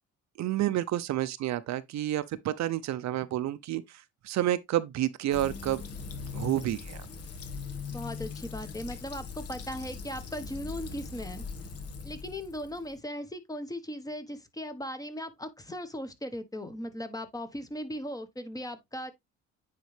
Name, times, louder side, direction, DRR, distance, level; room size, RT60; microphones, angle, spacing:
voice 1, 0.4-5.8 6.3-7.1, right 13 dB, 65° right, 0.7 m, -30 dB
Fill (with liquid), 5.3-13.0, left 5 dB, 55° left, 1.7 m, -40 dB
voice 2, 7.9-11.4 12.0-19.1, equal, 10° left, 1.2 m, -38 dB
9.4 x 3.9 x 3.3 m
cardioid pair, 115°, 29 cm